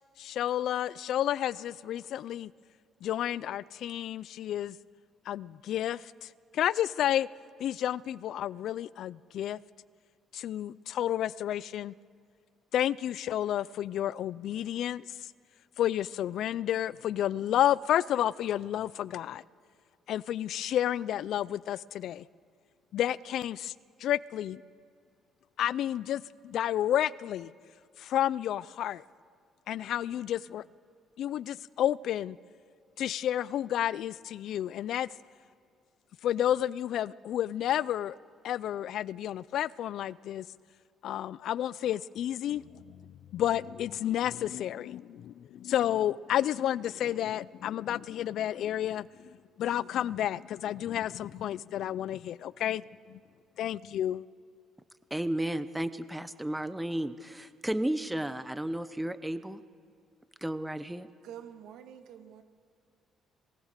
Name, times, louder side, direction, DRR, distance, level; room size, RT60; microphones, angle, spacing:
voice 1, 0.2-2.5 3.0-4.8 5.3-6.3 6.5-7.3 7.6-9.6 10.3-11.9 12.7-15.0 15.8-19.4 20.1-22.2 22.9-23.7 24.0-24.6 25.6-27.5 28.0-29.0 29.7-30.6 31.2-32.4 33.0-35.1 36.2-38.1 38.4-40.5 41.0-43.0 43.3-49.1 49.6-52.8 53.1-53.2 53.6-54.3, left 11 dB, 70° left, 0.4 m, -31 dB
voice 2, 55.1-59.6 60.4-61.1, right 1 dB, 5° right, 0.8 m, -33 dB
voice 3, 61.2-62.4, right 9 dB, 75° right, 1.7 m, -47 dB
20.5 x 19.0 x 6.6 m
cardioid pair, 110°, 0 cm